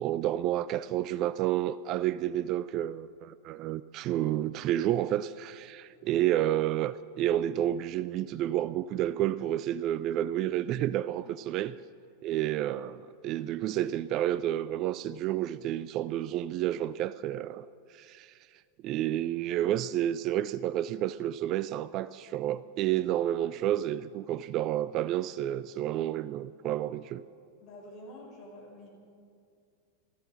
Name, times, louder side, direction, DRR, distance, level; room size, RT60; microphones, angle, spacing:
voice 1, 0.0-11.8 12.2-18.3 18.8-27.2, right 12 dB, 35° right, 0.3 m, -30 dB
voice 2, 27.6-28.9, left 1 dB, 35° left, 5.2 m, -48 dB
15.0 x 13.0 x 6.3 m
figure-of-eight pair, 90°, 0 cm